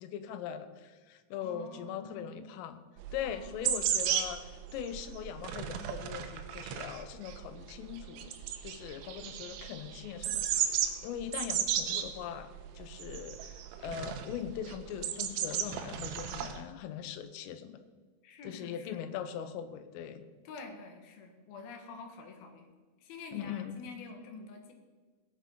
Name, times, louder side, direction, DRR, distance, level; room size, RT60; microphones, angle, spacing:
voice 1, 0.0-2.8 3.1-8.3 8.6-17.9 18.4-20.3 23.3-23.9, left 9 dB, 90° left, 10 dB, 3.5 m, -41 dB
voice 2, 1.4-2.5 3.2-3.8 18.2-19.0 20.4-22.7 23.0-24.7, left 3 dB, 60° left, 4 dB, 3.0 m, -47 dB
sound 1, 3.0-16.6, right 9 dB, 85° right, 2.2 m, -35 dB
17.5 x 8.5 x 5.7 m, 1.4 s
omnidirectional pair, 5.7 m